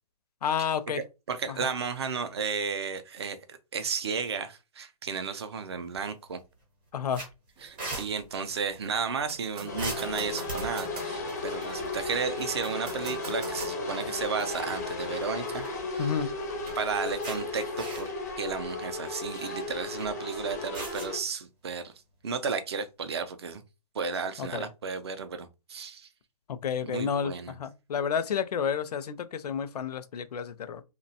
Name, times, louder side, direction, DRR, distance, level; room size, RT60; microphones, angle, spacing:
voice 1, 0.4-1.0 1.5-1.7 6.9-7.2 16.0-16.3 24.4-24.7 26.5-30.8, left 7 dB, 80° left, 0.5 m, -30 dB
voice 2, 1.3-6.4 7.6-15.6 15.9-16.1 16.8-21.9 22.2-23.6 23.9-26.1 26.8-27.6, right 5 dB, 45° right, 0.4 m, -33 dB
sound 1, 5.8-6.3 6.6-6.7 7.1-8.1 9.8-10.9 12.5-12.8 13.1-13.2 15.2-15.9 16.4-16.5 17.2-17.4 17.7-18.3 18.9-19.1 20.7-21.1, right 2 dB, 20° right, 0.8 m, -38 dB
sound 2, 7.6-17.6, right 4 dB, 80° right, 0.7 m, -48 dB
sound 3, 9.7-21.2, left 3 dB, 25° left, 0.4 m, -35 dB
2.8 x 2.2 x 2.7 m
hypercardioid pair, 175°, 20 cm